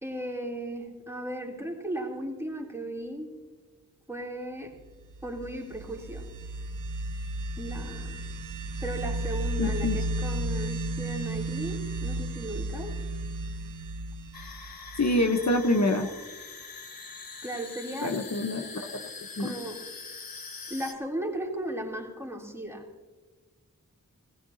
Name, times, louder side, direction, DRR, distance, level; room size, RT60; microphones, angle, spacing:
voice 1, 0.0-3.3 4.1-4.8 5.2-6.3 7.6-8.2 8.8-13.0 17.4-18.2 19.4-19.9 20.7-22.9, right 1 dB, 10° right, -2 dB, 3.5 m, -36 dB
sound 1, 5.0-15.6, right 2 dB, 65° right, 0.8 m, -34 dB
voice 2, 9.6-9.9 15.0-16.1 18.0-18.7 18.9-19.0 19.4-19.5, left 2 dB, 55° left, 4 dB, 1.1 m, -25 dB
sound 2, 14.3-20.9, left 4 dB, 90° left, 1.3 m, -43 dB
19.0 x 16.0 x 2.9 m, 1.3 s
wide cardioid pair, 60°, 34 cm